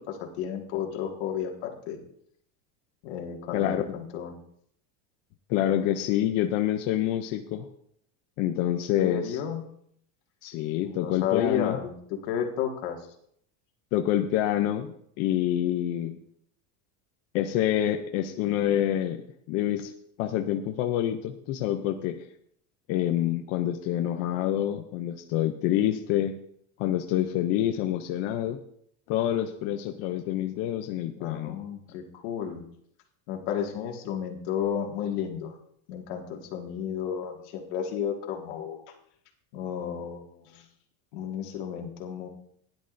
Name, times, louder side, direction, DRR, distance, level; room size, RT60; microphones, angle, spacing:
voice 1, 0.1-2.0 3.0-4.4 9.0-9.6 10.8-11.9 12.2-13.0 31.2-32.6 33.3-35.6 35.9-38.8 39.5-40.6 41.1-42.3, left 8 dB, 55° left, 1 dB, 1.8 m, -32 dB
voice 2, 3.5-3.8 5.5-7.7 8.4-9.4 10.4-11.8 13.9-16.2 17.3-19.2 19.5-19.9 20.2-22.2 22.9-26.3 26.8-28.6 29.1-31.6, left 12 dB, 35° left, 5 dB, 0.4 m, -27 dB
16.5 x 10.5 x 2.5 m, 0.70 s
cardioid pair, 180°, 39 cm